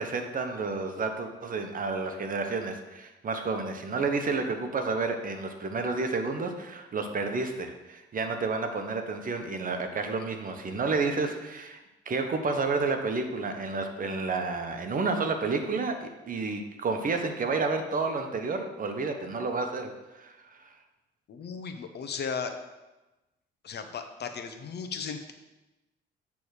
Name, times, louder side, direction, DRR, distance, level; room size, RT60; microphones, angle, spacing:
voice 1, 0.0-11.8 12.1-20.7, right 4 dB, 45° right, 5 dB, 1.0 m, -30 dB
voice 2, 21.3-22.5 23.6-25.3, left 6 dB, 55° left, 7 dB, 0.9 m, -36 dB
8.4 x 3.5 x 6.4 m, 1.1 s
cardioid pair, 90°, 20 cm